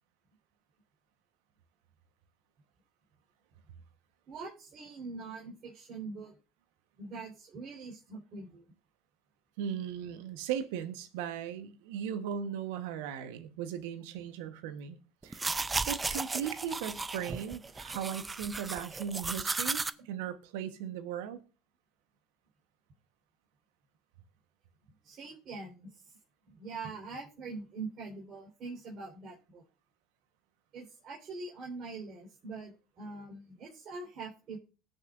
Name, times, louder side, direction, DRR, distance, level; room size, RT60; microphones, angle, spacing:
voice 1, 4.3-6.3 7.0-8.7 25.0-26.2 26.5-29.6 30.7-34.6, right 3 dB, 50° right, 4.0 m, -43 dB
voice 2, 9.6-15.0 15.2-21.4, right 9 dB, 80° right, 1.1 m, -38 dB
sound 1, 15.2-19.9, right 3 dB, 20° right, 0.5 m, -35 dB
20.0 x 6.8 x 2.5 m
supercardioid pair, 80°, 0 cm